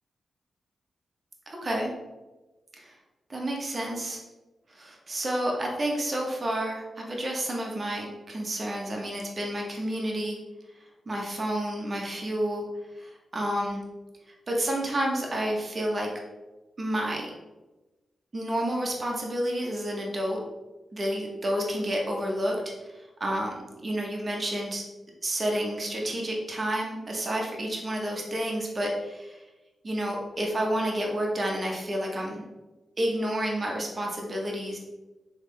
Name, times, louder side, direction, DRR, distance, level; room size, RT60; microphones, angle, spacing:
voice 1, 1.5-1.9 2.8-2.9 3.3-4.2 4.7-10.4 11.1-12.6 13.0-13.8 14.5-16.1 16.8-17.3 18.3-20.4 20.9-22.5 22.8-22.9 23.2-24.8 25.2-29.4 29.8-32.4 33.0-34.8, right 1 dB, 40° right, -1 dB, 1.0 m, -30 dB
3.5 x 3.2 x 3.3 m, 1.1 s
cardioid pair, 60°, 0 cm